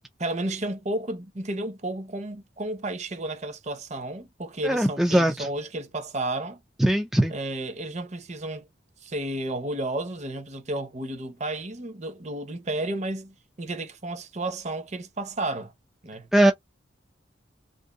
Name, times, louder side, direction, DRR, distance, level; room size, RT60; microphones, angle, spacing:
voice 1, 0.2-6.6 7.3-8.6 9.0-15.7 16.0-16.3, right 2 dB, 35° right, 0.7 m, -32 dB
voice 2, 4.6-5.5 6.8-7.3 16.3-16.5, right 1 dB, ahead, 0.3 m, -20 dB
2.6 x 2.5 x 3.6 m
head